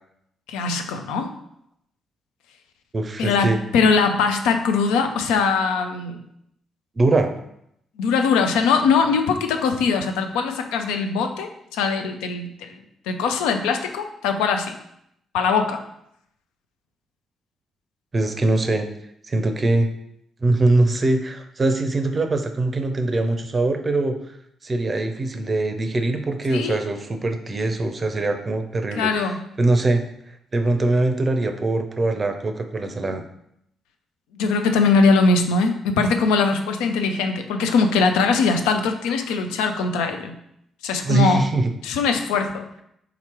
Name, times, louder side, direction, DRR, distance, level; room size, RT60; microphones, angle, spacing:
voice 1, 0.5-1.3 3.2-6.2 8.0-12.7 13.1-14.7 15.3-15.8 26.5-26.8 29.0-29.4 34.3-40.3 40.8-41.4 41.8-42.7, left 4 dB, 65° left, 6 dB, 0.4 m, -21 dB
voice 2, 2.9-3.6 7.0-7.3 18.1-18.9 19.3-19.9 20.4-24.1 24.6-29.1 29.6-30.0 30.5-33.2 41.0-41.7, right 2 dB, 30° right, 6 dB, 0.5 m, -22 dB
3.8 x 2.9 x 4.4 m, 0.76 s
figure-of-eight pair, 40°, 0 cm